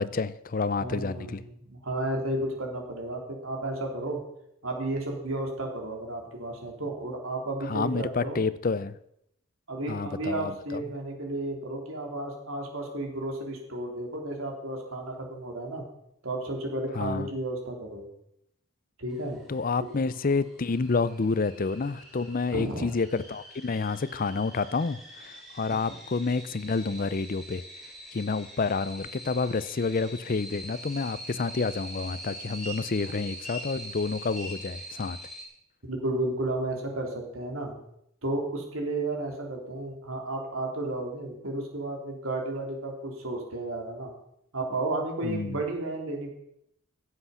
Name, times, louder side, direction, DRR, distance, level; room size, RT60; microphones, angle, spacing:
voice 1, 0.0-1.4 7.7-9.0 9.9-10.8 17.0-17.3 19.5-27.6 28.1-35.2 45.2-45.6, left 4 dB, 40° left, 16 dB, 0.5 m, -29 dB
voice 2, 0.8-4.2 4.6-8.4 9.7-15.9 16.2-18.0 19.0-19.4 22.5-22.9 25.7-25.8 35.9-37.7 38.2-44.1 44.5-46.3, right 2 dB, 80° right, 1 dB, 3.3 m, -33 dB
sound 1, 19.1-35.4, equal, ahead, 3.2 m, -44 dB
15.5 x 7.8 x 5.7 m, 0.75 s
head